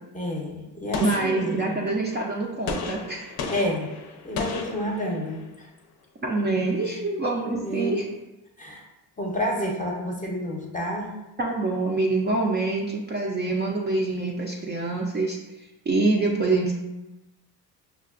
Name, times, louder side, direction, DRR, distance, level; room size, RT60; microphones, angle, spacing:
voice 1, 0.1-1.8 3.5-3.9 4.2-5.7 6.9-7.0 7.4-8.0 8.6-8.8 9.2-11.1, equal, 20° left, 0 dB, 0.7 m, -29 dB
Gunshot gunfire, 0.9-2.0 2.7-5.4, left 4 dB, 60° left, 0.6 m, -34 dB
voice 2, 1.0-3.3 6.2-8.0 11.4-16.7, right 2 dB, 25° right, -2 dB, 0.4 m, -25 dB
5.6 x 2.2 x 2.4 m, 1.0 s
cardioid pair, 90°, 42 cm